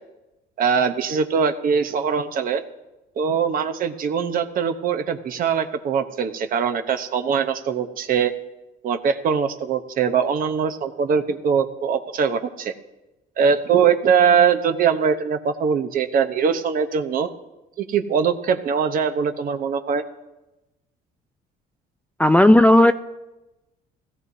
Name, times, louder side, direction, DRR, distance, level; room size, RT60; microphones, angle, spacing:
voice 1, 0.6-2.6 3.2-8.3 8.8-12.7 13.4-17.3 17.8-20.0, right 6 dB, 55° right, 8 dB, 0.9 m, -22 dB
voice 2, 22.2-22.9, left 1 dB, 10° left, 9 dB, 0.3 m, -13 dB
16.5 x 15.5 x 2.8 m, 1.0 s
cardioid pair, 110°, 17 cm